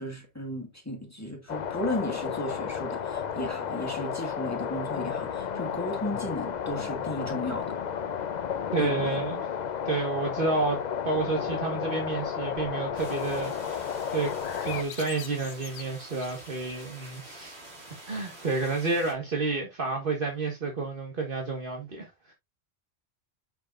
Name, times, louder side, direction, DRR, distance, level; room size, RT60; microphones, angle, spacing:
voice 1, 0.0-7.8 8.8-8.9, left 1 dB, 15° left, 2.0 m, -35 dB
sound 1, 1.5-14.8, left 8 dB, 50° left, 0.7 m, -32 dB
voice 2, 8.7-9.4 9.8-14.3 14.6-17.5 18.1-22.3, right 3 dB, 55° right, 1.7 m, -30 dB
sound 2, 12.9-19.1, right 2 dB, 70° right, 3.1 m, -47 dB
sound 3, 14.2-16.9, left 9 dB, 75° left, 1.0 m, -44 dB
7.5 x 6.7 x 2.5 m
omnidirectional pair, 1.1 m